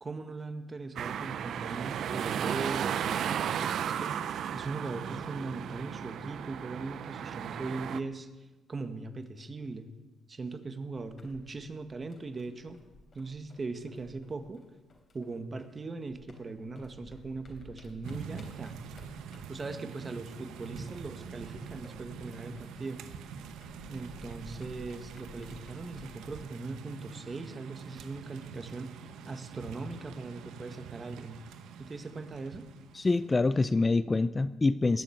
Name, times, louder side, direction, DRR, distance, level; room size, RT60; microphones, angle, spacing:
voice 1, 0.0-4.2 4.5-9.9 10.3-12.8 13.1-14.6 15.1-18.8 19.5-23.1 23.9-31.4 31.8-32.7, right 3 dB, 30° right, 8 dB, 1.6 m, -40 dB
sound 1, 1.0-8.0, right 9 dB, 70° right, 0.6 m, -34 dB
sound 2, 10.9-15.8 16.1-26.4, left 2 dB, 40° left, 3.8 m, -55 dB
Rumbling Thunder, 18.0-33.6, right 6 dB, 85° right, 1.1 m, -46 dB
voice 2, 32.9-35.0, left 3 dB, 25° left, 14 dB, 0.5 m, -26 dB
20.5 x 7.4 x 8.7 m, 1.2 s
cardioid pair, 90°, 0 cm